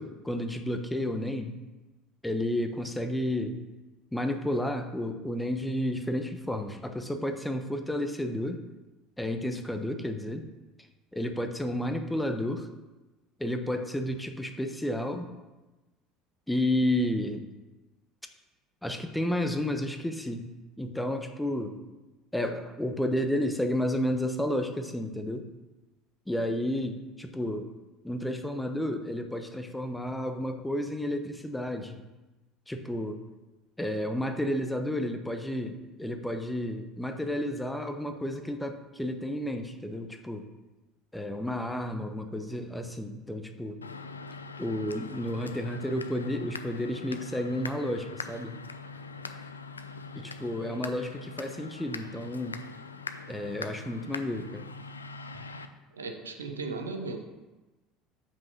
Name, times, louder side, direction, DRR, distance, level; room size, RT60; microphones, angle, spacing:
voice 1, 0.0-1.6 2.2-3.6 4.1-8.6 9.2-10.4 11.1-12.7 13.4-15.3 16.5-17.5 18.8-20.5 20.8-21.8 22.3-25.5 26.3-27.7 28.0-32.0 32.7-33.2 33.8-40.5 41.1-43.8 44.6-48.6 50.1-52.7 53.3-54.7, left 1 dB, 5° left, 6 dB, 0.8 m, -31 dB
sound 1, 43.8-55.7, left 4 dB, 85° left, 0.4 m, -42 dB
voice 2, 55.9-57.2, right 3 dB, 80° right, 5 dB, 0.8 m, -36 dB
5.7 x 5.2 x 6.2 m, 1.1 s
figure-of-eight pair, 65°, 0 cm